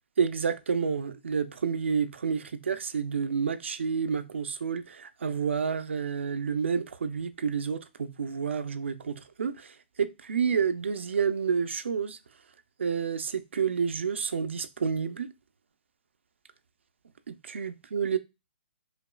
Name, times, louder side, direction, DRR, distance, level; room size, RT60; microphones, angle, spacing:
voice 1, 0.2-12.2 12.8-15.3 17.3-18.2, right 6 dB, 90° right, 0.5 m, -29 dB
5.1 x 2.3 x 2.3 m
hypercardioid pair, 155°, 6 cm